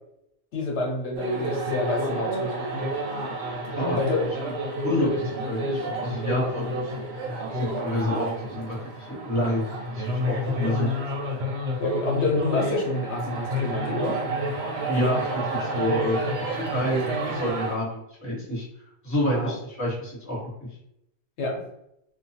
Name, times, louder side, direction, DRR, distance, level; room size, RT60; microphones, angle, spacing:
voice 1, 0.5-2.9 4.0-4.2 11.8-14.2 19.2-19.6 21.4-21.6, left 2 dB, 80° left, -1 dB, 0.9 m, -28 dB
sound 1, 1.2-17.7, right 1 dB, 70° right, 0.9 m, -30 dB
voice 2, 4.8-6.8 7.5-9.6 9.9-10.9 14.9-18.6 19.0-20.7, equal, 15° left, -7 dB, 1.1 m, -28 dB
2.3 x 2.2 x 2.7 m, 0.80 s
omnidirectional pair, 1.1 m